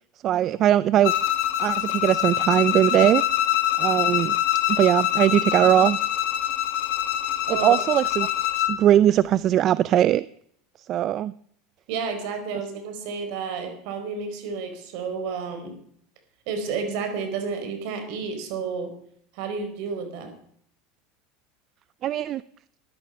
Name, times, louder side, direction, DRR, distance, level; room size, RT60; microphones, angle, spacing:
voice 1, 0.2-1.1 1.6-3.2 3.8-4.4 4.7-6.0 7.6-8.3 8.5-10.3 10.9-11.3 22.0-22.4, right 12 dB, 45° right, 18 dB, 0.4 m, -20 dB
Bowed string instrument, 1.0-8.8, left 12 dB, 70° left, 1.6 m, -24 dB
voice 2, 11.9-15.8 16.5-18.9 19.3-20.3, right 5 dB, 65° right, 7 dB, 4.6 m, -31 dB
14.0 x 11.5 x 5.6 m, 0.64 s
supercardioid pair, 100°, 0 cm